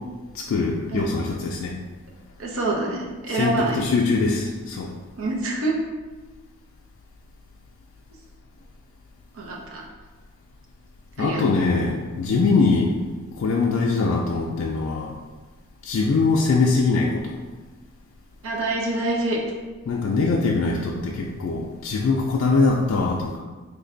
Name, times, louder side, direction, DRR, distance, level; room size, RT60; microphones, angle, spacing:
voice 1, 0.3-1.7 3.3-4.9 11.2-12.9 13.4-15.2 15.8-17.4 19.9-23.4, left 3 dB, 65° left, -2 dB, 0.3 m, -22 dB
voice 2, 2.4-4.0 5.2-5.8 9.3-9.8 11.2-11.4 18.4-19.4, right 2 dB, 70° right, -2 dB, 0.7 m, -26 dB
3.2 x 2.2 x 3.8 m, 1.3 s
head